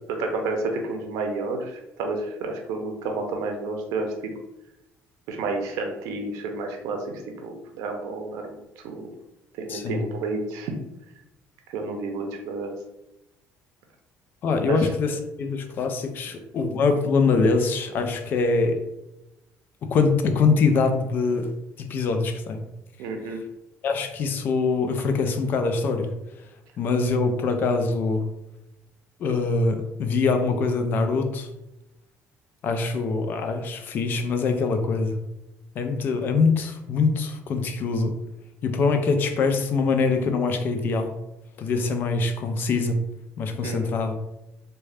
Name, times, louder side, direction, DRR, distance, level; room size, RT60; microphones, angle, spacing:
voice 1, 0.2-4.1 5.3-8.6 8.8-9.1 9.6-10.7 11.7-12.7 14.7-14.8 23.0-23.4 43.6-43.9, right 3 dB, 90° right, 3 dB, 0.5 m, -30 dB
voice 2, 9.7-10.0 14.4-18.8 19.8-21.5 21.8-22.6 23.3-23.4 23.8-26.1 26.8-28.3 29.2-31.5 32.6-35.2 35.8-38.1 38.6-41.1 41.6-43.0 43.4-44.2, left 4 dB, 40° left, 6 dB, 0.4 m, -23 dB
3.6 x 2.2 x 3.3 m, 0.91 s
cardioid pair, 170°, 5 cm